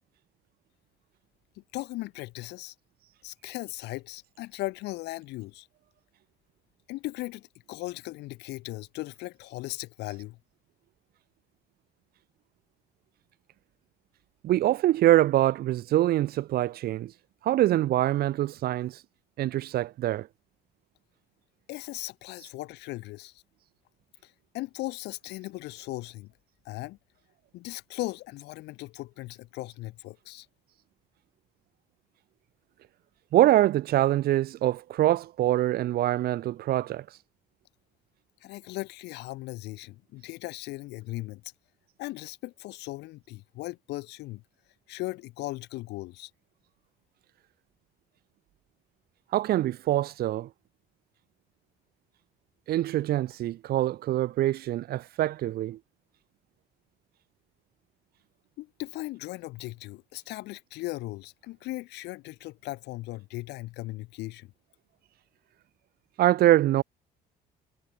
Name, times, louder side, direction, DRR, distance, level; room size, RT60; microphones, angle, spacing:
voice 1, 1.6-2.7 3.2-5.7 6.9-10.4 21.7-23.3 24.2-26.3 26.6-27.0 27.5-30.5 38.4-41.4 42.0-44.4 44.9-46.3 58.6-64.5, left 19 dB, 85° left, 4.2 m, -38 dB
voice 2, 14.4-17.1 17.4-19.0 19.4-20.3 33.3-37.0 49.3-50.5 52.7-55.8 66.2-66.8, right 14 dB, 65° right, 1.1 m, -24 dB
cardioid pair, 110°, 17 cm